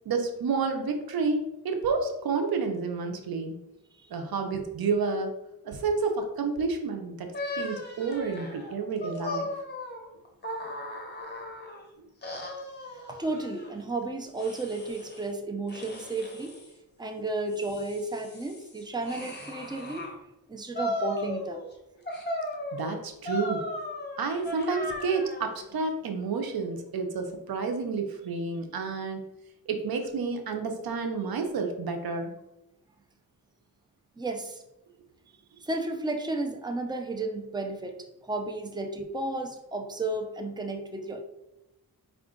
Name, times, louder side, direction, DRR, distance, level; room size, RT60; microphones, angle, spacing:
voice 1, 0.0-3.6 4.1-5.3 5.6-9.5 22.7-23.6 24.2-29.2 29.7-32.3, right 4 dB, 80° right, 5 dB, 0.7 m, -30 dB
sound 1, 7.3-11.8 12.2-13.7 14.4-15.3 15.7-16.7 17.3-20.1 20.7-21.7 22.1-25.5, left 1 dB, 30° left, 1.1 m, -37 dB
voice 2, 12.9-16.6 17.0-20.0 20.5-21.6 34.2-34.6 35.6-41.2, right 2 dB, 10° right, 4 dB, 0.6 m, -33 dB
4.9 x 2.4 x 3.7 m, 0.92 s
cardioid pair, 65°, 36 cm